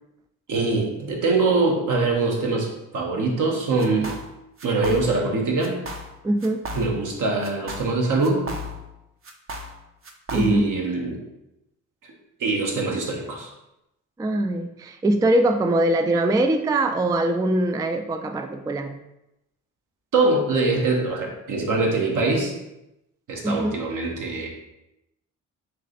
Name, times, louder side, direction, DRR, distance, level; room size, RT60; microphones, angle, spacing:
voice 1, 0.5-2.7 2.9-4.1 4.6-5.8 6.7-8.4 10.3-11.2 12.4-13.5 20.1-22.5 23.3-24.5, right 3 dB, 65° right, 0 dB, 1.1 m, -23 dB
sound 1, 3.8-4.3 4.6-5.3 5.6-6.1 6.4-7.1 7.4-8.9 9.2-10.8, left 1 dB, 40° right, 0.7 m, -35 dB
voice 2, 6.2-6.6 10.3-10.6 14.2-19.0 23.4-23.8, right 1 dB, 10° right, 6 dB, 0.3 m, -22 dB
3.3 x 3.2 x 3.9 m, 0.90 s
cardioid pair, 65°, 33 cm